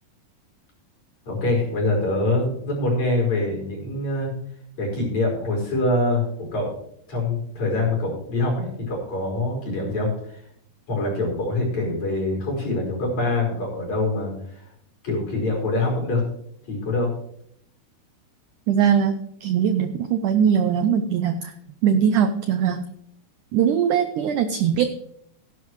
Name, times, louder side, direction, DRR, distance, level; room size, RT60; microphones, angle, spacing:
voice 1, 1.3-4.3 4.8-6.8 7.1-10.4 10.9-14.7 15.0-16.2 16.7-17.1, left 2 dB, 50° left, -2 dB, 6.3 m, -24 dB
voice 2, 18.7-21.5 21.8-22.9 23.5-24.9, right 8 dB, 80° right, 8 dB, 1.8 m, -21 dB
16.5 x 10.5 x 3.2 m, 0.69 s
omnidirectional pair, 4.4 m